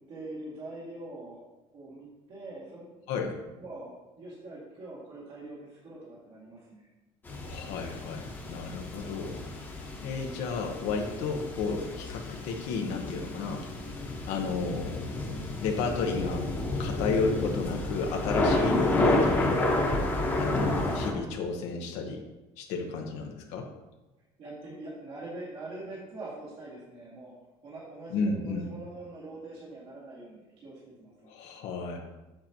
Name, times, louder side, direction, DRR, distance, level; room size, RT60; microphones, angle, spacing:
voice 1, 0.1-1.4 1.7-2.9 3.6-6.9 24.4-27.3 27.6-31.3, right 2 dB, 50° right, -7 dB, 2.3 m, -43 dB
voice 2, 3.1-3.4 7.4-9.4 10.0-16.5 16.8-19.7 20.4-22.2 22.6-23.7 28.1-28.7 31.2-32.0, left 4 dB, 75° left, 1 dB, 0.9 m, -33 dB
sound 1, 7.2-21.1, left 2 dB, 15° left, 1.2 m, -30 dB
7.7 x 7.3 x 2.9 m, 1.1 s
cardioid pair, 165°, 12 cm